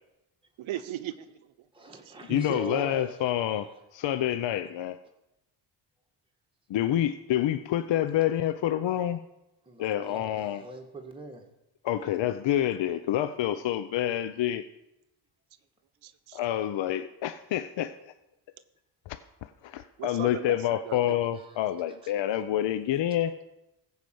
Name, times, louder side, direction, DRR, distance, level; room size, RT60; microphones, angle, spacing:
voice 1, 0.6-1.4 2.0-2.1 16.0-16.4 20.0-21.2, right 12 dB, 70° right, 12 dB, 0.8 m, -38 dB
voice 2, 1.7-3.8 9.7-11.4 22.0-22.1, right 2 dB, 10° right, 0 dB, 2.0 m, -40 dB
voice 3, 2.3-5.0 6.7-9.2 9.8-10.7 11.8-14.7 16.3-18.1 19.1-23.3, left 12 dB, 60° left, 12 dB, 0.7 m, -28 dB
15.0 x 5.2 x 7.8 m, 0.92 s
supercardioid pair, 60°, 49 cm